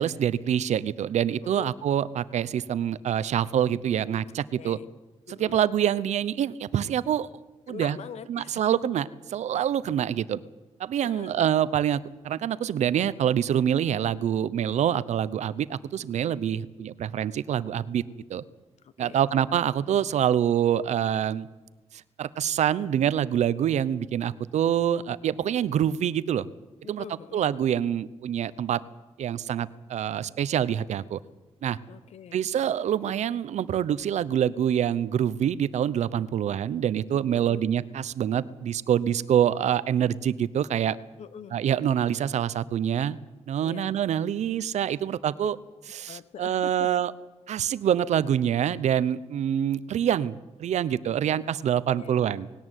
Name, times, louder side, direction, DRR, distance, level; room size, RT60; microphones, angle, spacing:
voice 1, 0.0-4.8 5.3-7.3 7.7-8.0 8.3-10.4 10.8-18.0 18.3-18.4 19.0-21.5 22.2-26.5 26.9-27.0 27.3-28.8 29.2-31.2 31.6-31.8 32.3-41.0 41.5-43.2 43.5-45.6 45.9-47.1 47.5-50.3 50.6-52.5, right 9 dB, 85° right, 17 dB, 0.8 m, -26 dB
voice 2, 1.4-1.8 4.6-4.9 5.3-5.7 7.7-8.6 11.0-11.4 18.8-19.3 26.8-27.5 31.9-32.4 37.3-37.7 41.2-41.6 43.6-44.0 45.4-45.5 46.1-46.9 51.9-52.2, left 8 dB, 70° left, 16 dB, 1.1 m, -43 dB
19.5 x 17.5 x 9.1 m, 1.1 s
wide cardioid pair, 165°, 12 cm